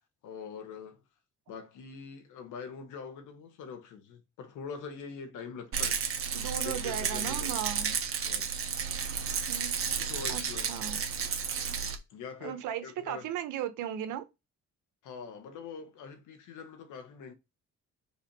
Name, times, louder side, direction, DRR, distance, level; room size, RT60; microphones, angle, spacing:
voice 1, 0.2-1.0 1.5-6.0 6.6-7.5 8.2-8.5 10.0-10.7 12.1-13.3 15.0-17.3, left 6 dB, 85° left, 1.6 m, -44 dB
Rattle, 5.7-12.0, right 6 dB, 45° right, 1.4 m, -32 dB
voice 2, 6.3-8.0 9.5-9.7 10.3-10.4 10.7-11.0 12.4-14.2, right 10 dB, 90° right, 1.1 m, -36 dB
4.9 x 4.4 x 5.3 m
cardioid pair, 90°, 30 cm